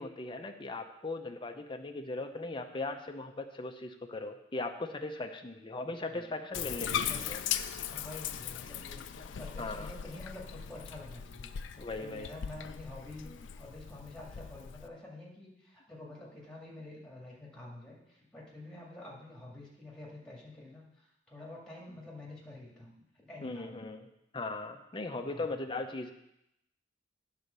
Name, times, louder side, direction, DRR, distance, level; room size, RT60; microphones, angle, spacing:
voice 1, 0.0-7.4 9.6-9.9 11.8-12.3 13.3-13.4 23.4-24.1 24.3-26.1, left 2 dB, 25° left, 4 dB, 0.6 m, -39 dB
Bathtub (filling or washing), 6.5-14.9, left 9 dB, 75° left, 0.4 m, -39 dB
voice 2, 6.8-7.4 7.9-9.0 9.4-23.7 25.3-25.6, left 2 dB, 5° left, -3 dB, 2.0 m, -48 dB
9.2 x 4.1 x 6.7 m, 0.83 s
head